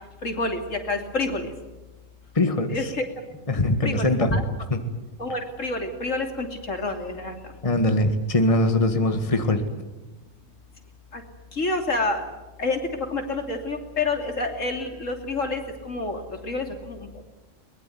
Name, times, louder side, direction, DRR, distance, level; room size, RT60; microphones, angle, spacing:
voice 1, 0.2-1.5 2.7-3.0 3.8-4.4 5.2-7.3 11.1-11.2 11.5-12.2 12.6-12.8 13.1-17.2, left 2 dB, 75° left, 5 dB, 3.3 m, -28 dB
voice 2, 2.3-2.9 3.5-4.4 4.7-4.8 7.6-9.6, left 1 dB, 25° left, 7 dB, 1.9 m, -22 dB
23.0 x 21.0 x 9.4 m, 1.1 s
omnidirectional pair, 1.3 m